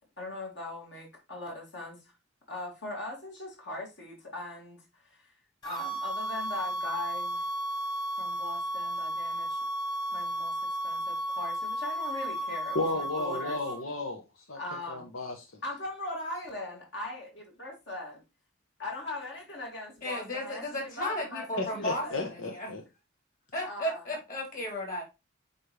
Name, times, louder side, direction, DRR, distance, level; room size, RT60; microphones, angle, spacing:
voice 1, 0.2-2.0 2.5-5.3 5.6-7.4 8.2-9.6 10.1-10.5 10.8-13.6 14.5-15.1 15.6-17.3 17.6-18.2 18.8-22.2 23.6-24.0, left 2 dB, 60° left, 2.6 m, -40 dB
sound 1, 5.6-13.8, right 1 dB, 20° left, 1.7 m, -33 dB
voice 2, 12.7-14.2 14.5-14.6 14.9-15.5 21.6-22.8, left 2 dB, 85° left, 1.1 m, -33 dB
voice 3, 20.0-22.7 23.5-25.0, equal, 45° left, 4.0 m, -34 dB
8.4 x 4.2 x 3.3 m
head